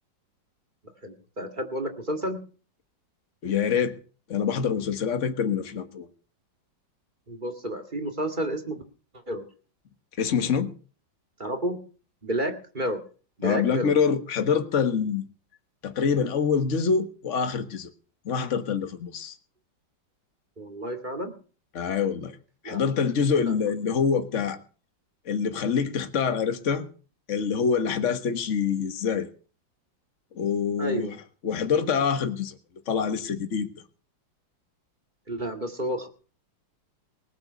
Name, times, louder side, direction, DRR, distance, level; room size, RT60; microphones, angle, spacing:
voice 1, 1.0-2.4 7.3-8.8 9.3-9.5 11.4-11.8 12.2-13.0 13.4-13.9 20.6-21.3 22.6-22.8 23.4-23.6 30.8-31.2 35.3-36.1, right 1 dB, 25° right, 2.3 m, -30 dB
voice 2, 3.4-4.0 4.3-6.1 10.2-10.7 13.4-15.3 15.8-17.9 18.2-19.3 21.7-22.3 22.6-24.6 25.2-26.8 27.3-29.3 30.3-31.1 31.4-32.5 32.9-33.7, left 6 dB, 40° left, 1.6 m, -25 dB
20.0 x 7.7 x 6.8 m
omnidirectional pair, 2.0 m